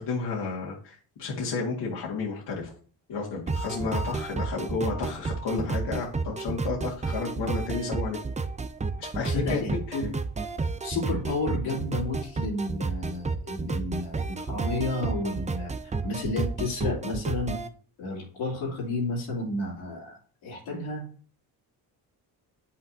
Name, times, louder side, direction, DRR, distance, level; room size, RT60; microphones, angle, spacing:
voice 1, 0.0-2.7 3.1-8.2 9.0-9.6 9.9-10.0, left 4 dB, 60° left, -3 dB, 1.9 m, -31 dB
sound 1, 3.5-17.7, right 4 dB, 15° right, 0.5 m, -31 dB
voice 2, 9.3-10.1 10.8-15.7 16.0-17.6 18.0-20.2 20.4-21.0, left 2 dB, 85° left, -3 dB, 2.8 m, -31 dB
8.1 x 5.8 x 2.7 m, 0.43 s
supercardioid pair, 70°, 48 cm